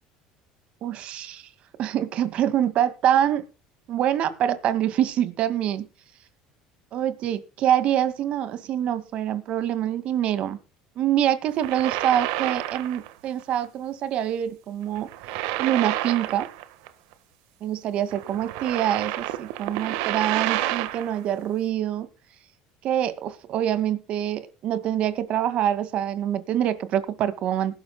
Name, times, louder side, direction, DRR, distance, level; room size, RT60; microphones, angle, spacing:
voice 1, 0.8-1.4 1.8-3.4 3.9-5.9 6.9-10.6 11.0-15.1 15.6-16.5 17.6-22.1 22.8-27.7, right 11 dB, 55° right, 2.1 m, -25 dB
sound 1, 11.5-13.1 13.4-13.6 15.0-16.9 17.1-17.2 18.1-21.2, right 14 dB, 80° right, 1.5 m, -29 dB
20.0 x 12.0 x 2.3 m
supercardioid pair, 105°, 2 cm